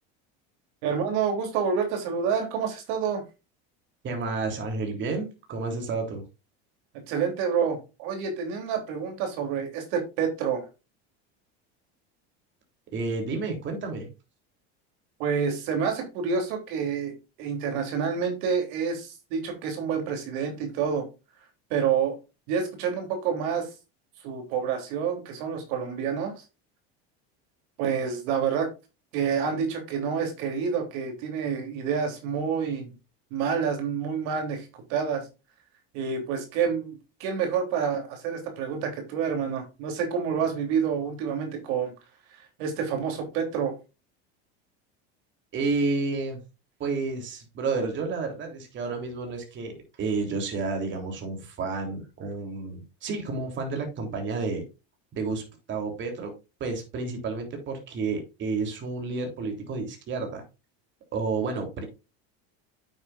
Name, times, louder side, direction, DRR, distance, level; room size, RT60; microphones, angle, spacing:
voice 1, 0.8-3.2 7.1-10.7 15.2-17.1 17.4-21.1 21.7-22.1 22.5-23.7 24.2-26.4 27.8-28.7 29.1-32.9 33.3-35.3 35.9-41.9 42.3-43.8, right 6 dB, 75° right, 3 dB, 3.2 m, -28 dB
voice 2, 4.0-6.2 12.9-14.1 45.5-46.4 46.8-54.6 55.1-55.4 55.7-56.3 56.6-60.4 61.1-61.8, right 3 dB, 40° right, 3 dB, 3.3 m, -30 dB
9.2 x 8.1 x 2.5 m, 0.27 s
supercardioid pair, 135°, 30 cm